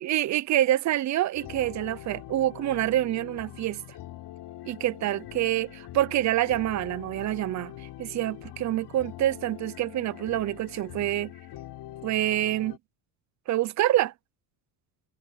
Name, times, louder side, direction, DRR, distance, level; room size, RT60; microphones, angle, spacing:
voice 1, 0.0-3.8 4.7-11.3 12.0-12.8 13.5-14.1, right 14 dB, 40° right, 0.5 m, -27 dB
sound 1, 1.3-12.8, left 14 dB, 55° left, 3.4 m, -43 dB
cardioid pair, 150°, 48 cm